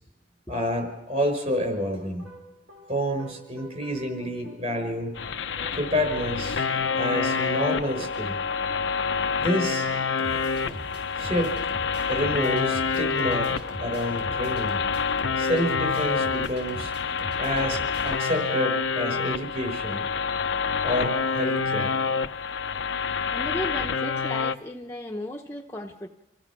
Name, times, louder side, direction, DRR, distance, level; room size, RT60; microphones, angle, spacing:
voice 1, 0.5-2.3 2.9-5.1 5.7-6.6 7.0-8.4 9.4-9.9 10.6-10.7 11.2-11.6 12.1-14.8 15.4-16.9 17.4-20.0 20.8-21.9, equal, 35° right, 5 dB, 5.6 m, -28 dB
sound 1, 2.2-18.8, right 1 dB, 65° right, 6.1 m, -43 dB
sound 2, 5.2-24.6, left 5 dB, 75° left, 0.7 m, -27 dB
voice 2, 23.3-26.1, left 1 dB, 15° left, 1 dB, 0.9 m, -35 dB
27.0 x 16.5 x 6.1 m, 1.0 s
head